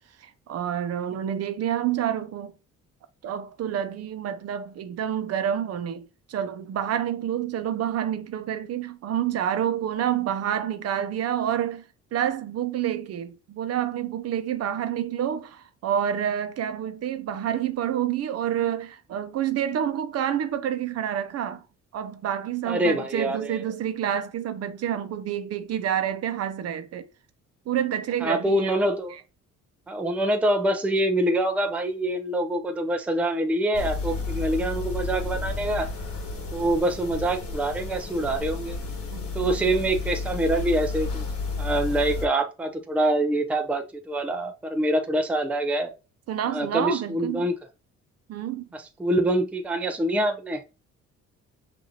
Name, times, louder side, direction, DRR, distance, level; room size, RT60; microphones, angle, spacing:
voice 1, 0.2-2.5 3.2-21.6 21.9-27.1 27.7-28.8 39.1-39.3 46.3-47.5 48.3-48.7, right 10 dB, 60° right, 0.7 m, -28 dB
voice 2, 22.7-23.7 28.2-29.1 29.9-35.9 36.5-38.8 39.3-41.2 41.6-45.9 46.4-47.5 48.7-50.6, right 1 dB, 5° right, 0.5 m, -25 dB
sound 1, 33.7-42.3, left 4 dB, 50° left, 1.6 m, -32 dB
5.8 x 2.6 x 2.8 m
cardioid pair, 135°, 29 cm